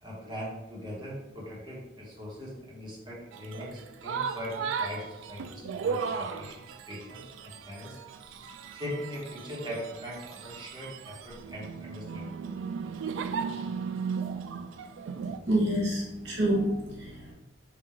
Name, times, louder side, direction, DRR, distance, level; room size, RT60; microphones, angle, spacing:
voice 1, 0.0-8.0 8.2-12.3, equal, 25° right, -5 dB, 1.0 m, -40 dB
sound 1, 3.3-15.4, right 6 dB, 90° right, 0.3 m, -36 dB
voice 2, 15.5-17.3, right 1 dB, 60° right, -3 dB, 0.9 m, -27 dB
3.7 x 2.4 x 4.3 m, 0.97 s
head